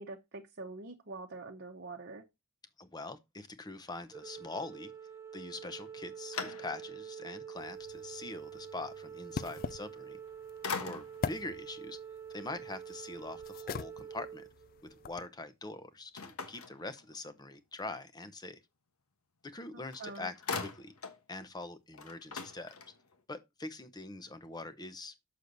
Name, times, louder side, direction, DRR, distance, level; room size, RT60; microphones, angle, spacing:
voice 1, 0.0-2.2 19.7-20.3, right 3 dB, 50° right, 0.9 m, -45 dB
voice 2, 2.8-4.9 5.3-10.2 10.8-12.0 12.3-14.5 14.8-18.6 19.4-20.9 21.3-22.8 23.3-25.2, left 2 dB, 20° left, 0.7 m, -43 dB
Organ, 4.1-15.2, right 8 dB, 15° right, 1.0 m, -47 dB
sound 1, 5.7-7.1 7.6-7.7 10.0-10.3 10.6-11.4 16.1-17.4 19.5-19.6 19.9-21.2 21.6-21.7 21.9-23.2, left 5 dB, 75° left, 1.2 m, -41 dB
sound 2, 7.6-15.3, left 5 dB, 40° left, 0.3 m, -44 dB
6.7 x 6.5 x 3.9 m
head